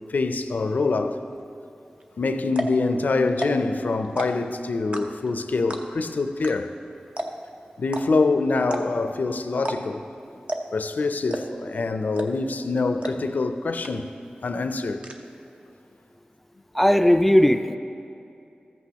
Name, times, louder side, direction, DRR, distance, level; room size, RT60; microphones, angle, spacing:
voice 1, 0.1-1.2 2.2-6.7 7.8-10.0 10.7-14.1 14.4-15.1, left 3 dB, 70° left, 0.5 m, -25 dB
sound 1, 2.0-2.1 2.5-2.8 3.3-3.7 4.0-4.5 4.9-5.3 5.7-6.0 6.4-6.5 6.8-6.9 7.2-7.5 7.9-8.0 8.6-9.1 9.6-10.0 10.5-10.8 11.3-11.7 12.2-12.5 13.0-13.1 13.5-13.6 13.8-14.3 14.5-15.1, right 1 dB, 40° right, 0.7 m, -31 dB
voice 2, 16.7-17.8, equal, 5° left, 0.4 m, -17 dB
13.5 x 8.2 x 2.9 m
wide cardioid pair, 75°, 3 cm